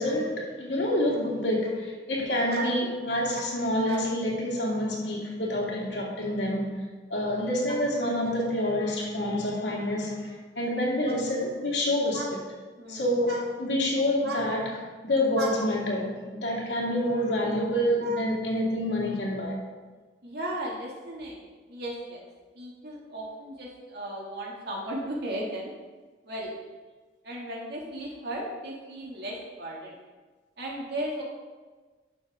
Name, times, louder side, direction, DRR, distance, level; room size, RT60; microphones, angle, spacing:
voice 1, 0.0-6.8 7.1-12.4 12.9-14.7 15.0-19.6, left 1 dB, 75° left, -3 dB, 2.5 m, -27 dB
voice 2, 2.1-2.8 3.3-3.5 3.9-4.0 12.1-12.3 12.8-13.0 13.3-13.4 14.2-14.4 15.4-15.5 18.0-18.2 20.2-21.4 21.7-22.2 22.5-25.7 26.2-26.5 27.2-29.9 30.6-31.2, right 1 dB, 60° right, -3 dB, 2.4 m, -35 dB
12.0 x 6.8 x 3.7 m, 1.4 s
head